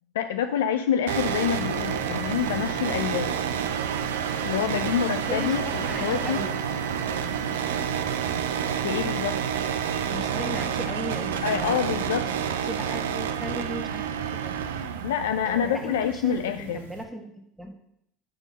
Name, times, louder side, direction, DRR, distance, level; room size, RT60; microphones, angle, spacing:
voice 1, 0.1-3.4 4.4-6.5 8.8-9.4 11.4-12.5 15.0-16.9, left 9 dB, 85° left, 9 dB, 0.3 m, -27 dB
sound 1, 1.1-10.1, right 7 dB, 55° right, 1.1 m, -42 dB
sound 2, 1.1-17.0, right 8 dB, 85° right, 0.6 m, -29 dB
voice 2, 5.3-5.6 5.8-6.6 10.1-11.8 12.2-12.4 12.7-14.0 14.3-14.6 15.4-17.3 17.6-17.8, equal, ahead, 2 dB, 1.4 m, -36 dB
5.7 x 5.3 x 6.3 m, 0.75 s
hypercardioid pair, 85°, 0 cm